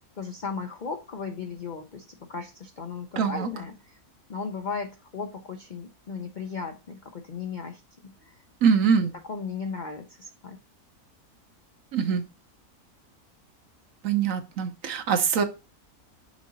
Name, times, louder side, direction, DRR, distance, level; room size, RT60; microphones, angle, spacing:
voice 1, 0.2-4.0 4.3-8.4 9.3-10.6, left 5 dB, 65° left, 6 dB, 0.4 m, -36 dB
voice 2, 3.2-3.5 8.6-9.1 11.9-12.2 14.0-15.4, right 6 dB, 65° right, 8 dB, 1.1 m, -23 dB
6.2 x 3.8 x 4.0 m, 0.29 s
omnidirectional pair, 1.6 m